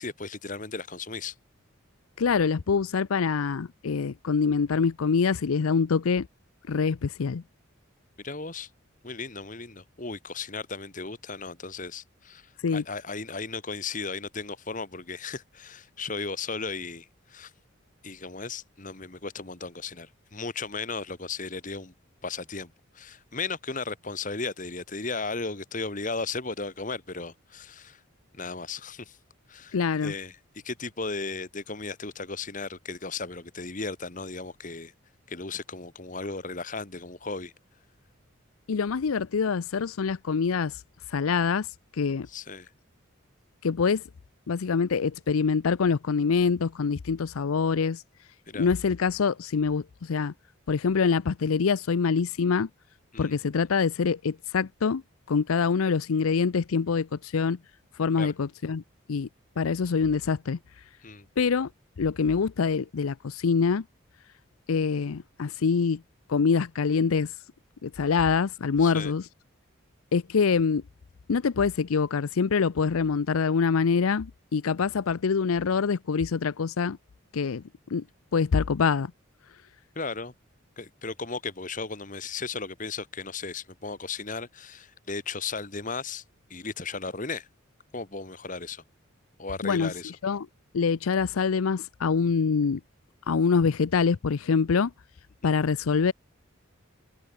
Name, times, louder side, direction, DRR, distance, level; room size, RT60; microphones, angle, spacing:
voice 1, 0.0-1.4 8.2-8.7 9.0-17.5 18.0-21.9 22.2-28.0 28.3-29.2 29.5-34.9 35.3-37.5 42.3-42.7 48.5-48.7 53.1-53.4 58.2-58.3 61.0-61.3 68.8-69.1 80.0-80.3 80.8-86.2 86.5-87.5 87.9-88.8 89.4-90.1 95.4-95.6, left 4 dB, 40° left, 1.8 m, -36 dB
voice 2, 2.2-6.3 6.7-7.4 12.6-12.8 29.7-30.1 38.7-40.8 41.1-42.3 43.6-44.0 44.5-48.0 48.6-50.3 50.7-52.7 53.2-55.0 55.3-57.6 58.0-58.8 59.1-59.3 59.6-60.6 61.4-61.7 62.0-63.8 64.7-66.0 66.3-67.3 67.8-69.2 70.1-70.8 71.3-77.0 77.3-78.0 78.3-79.1 89.6-89.9 90.2-90.5 90.7-92.8 93.3-94.9 95.4-96.1, left 5 dB, 90° left, 0.5 m, -25 dB
head